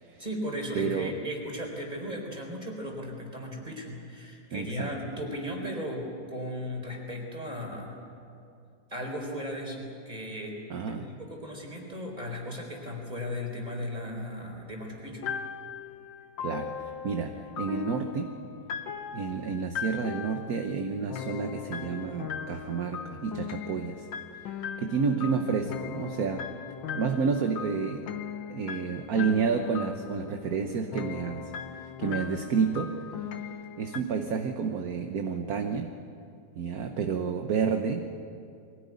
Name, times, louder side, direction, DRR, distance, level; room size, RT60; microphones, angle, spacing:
voice 1, 0.2-6.0 6.3-8.0 8.9-10.5 10.9-15.3, equal, 20° right, 1 dB, 4.3 m, -36 dB
voice 2, 0.7-1.1 4.5-4.9 10.7-11.1 16.4-16.7 17.0-18.3 19.1-24.1 24.8-26.4 26.9-28.1 28.5-33.0 33.8-35.9 36.6-38.1, right 5 dB, 55° right, 5 dB, 1.4 m, -30 dB
sound 1, 15.2-34.0, left 7 dB, 75° left, 1.7 m, -38 dB
22.5 x 17.0 x 9.5 m, 2.5 s
omnidirectional pair, 2.1 m